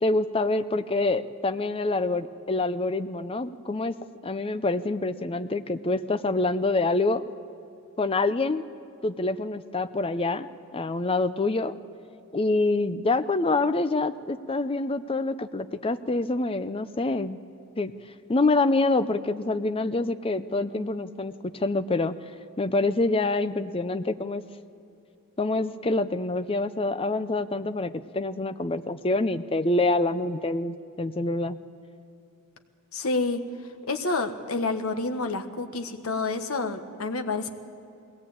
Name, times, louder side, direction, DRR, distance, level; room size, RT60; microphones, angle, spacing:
voice 1, 0.0-3.9 4.2-7.2 8.0-8.7 9.0-11.7 12.3-17.4 17.8-17.9 18.3-22.2 22.6-24.4 25.4-31.6, left 2 dB, 25° left, 11 dB, 0.6 m, -26 dB
voice 2, 32.9-33.4 33.9-37.5, left 3 dB, 70° left, 6 dB, 1.4 m, -28 dB
21.0 x 17.5 x 8.7 m, 2.7 s
head